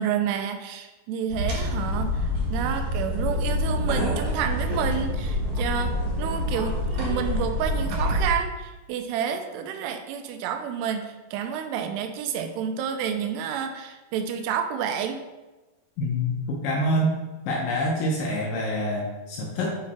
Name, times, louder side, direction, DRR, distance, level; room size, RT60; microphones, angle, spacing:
voice 1, 0.0-15.2, right 8 dB, 85° right, 6 dB, 2.7 m, -29 dB
sound 1, 1.3-8.3, left 1 dB, 60° right, 1.5 m, -26 dB
voice 2, 16.0-17.2 17.5-19.8, equal, 75° left, -2 dB, 2.1 m, -26 dB
8.5 x 4.0 x 4.2 m, 1.2 s
omnidirectional pair, 4.8 m